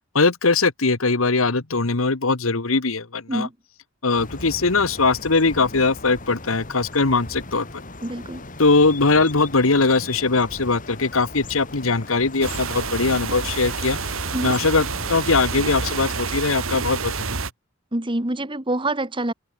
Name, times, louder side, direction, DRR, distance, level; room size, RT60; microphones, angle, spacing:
voice 1, 0.1-3.5 4.0-7.7 8.6-14.0 14.4-17.4, left 3 dB, 85° left, 1.6 m, -21 dB
sound 1, 4.2-16.2, left 2 dB, 40° left, 4.1 m, -38 dB
voice 2, 8.0-8.4 14.3-14.5 17.9-19.3, right 1 dB, 25° right, 1.9 m, -26 dB
sound 2, 12.4-17.5, right 4 dB, 75° right, 2.4 m, -28 dB
open air
head